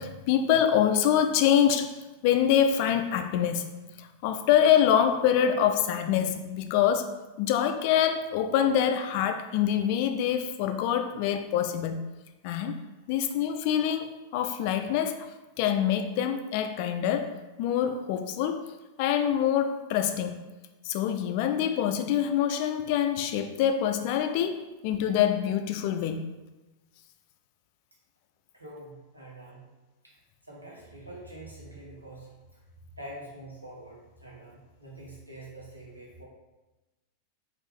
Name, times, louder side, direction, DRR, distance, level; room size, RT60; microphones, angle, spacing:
voice 1, 0.0-1.9 2.2-3.6 4.0-12.0 12.4-12.8 13.1-15.2 15.6-18.6 19.0-20.4 20.8-26.3, left 9 dB, 45° left, 7 dB, 0.3 m, -25 dB
voice 2, 28.5-29.7 30.0-30.1 30.4-32.6 33.0-36.2, right 1 dB, 85° right, -4 dB, 1.1 m, -45 dB
4.3 x 2.5 x 3.6 m, 1.1 s
figure-of-eight pair, 90°, 0 cm